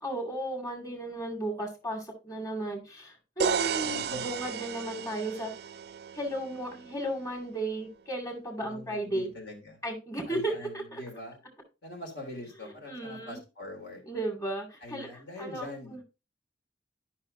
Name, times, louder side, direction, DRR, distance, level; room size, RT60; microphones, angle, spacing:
voice 1, 0.0-5.5 6.1-9.3 9.8-11.0 12.9-13.4 14.0-15.1 15.4-16.0, right 1 dB, 20° left, 1 dB, 2.2 m, -34 dB
sound 1, 3.4-7.2, right 7 dB, 55° right, 0.4 m, -34 dB
voice 2, 3.5-4.4 8.6-9.8 10.3-11.4 11.8-14.0 14.8-16.0, left 2 dB, 65° left, 3 dB, 2.9 m, -44 dB
12.0 x 5.7 x 2.6 m, 0.29 s
head